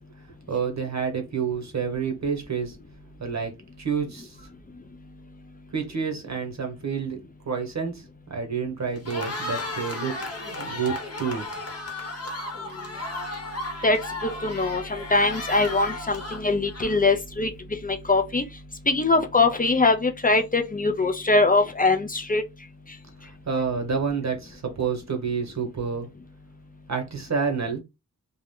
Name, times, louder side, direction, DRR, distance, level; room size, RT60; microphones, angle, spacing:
voice 1, 0.5-2.8 3.2-3.5 3.8-4.4 5.7-11.5 23.2-26.1 26.9-27.8, right 6 dB, 50° right, 0.9 m, -29 dB
Cheering, 8.9-17.2, left 2 dB, 45° left, 0.9 m, -34 dB
voice 2, 13.8-17.5 17.8-18.4 18.9-22.4, left 3 dB, 25° left, 0.4 m, -22 dB
2.4 x 2.1 x 3.5 m
cardioid pair, 55°, 36 cm